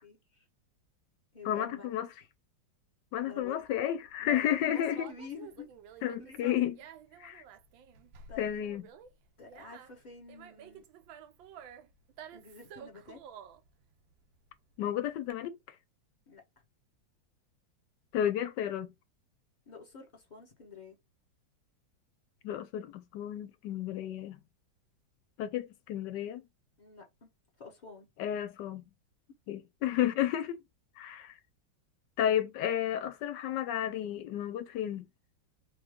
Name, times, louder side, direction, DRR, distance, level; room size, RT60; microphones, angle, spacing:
voice 1, 0.0-0.4 1.3-2.0 3.2-3.6 4.2-5.7 6.2-6.6 8.3-8.7 9.4-10.8 12.3-13.2 16.3-16.4 19.7-21.0 26.8-27.3 27.6-28.1, left 5 dB, 25° left, 1.4 m, -48 dB
voice 2, 1.4-2.1 3.1-5.1 6.0-6.7 7.2-7.4 8.4-8.8 14.8-15.6 18.1-18.9 22.4-24.4 25.4-26.4 28.2-28.8 29.5-30.6 31.0-31.3 32.2-35.1, left 11 dB, 75° left, 1.1 m, -32 dB
Conversation, 3.4-15.3, right 7 dB, 85° right, 1.4 m, -52 dB
3.7 x 3.1 x 3.6 m
omnidirectional pair, 2.0 m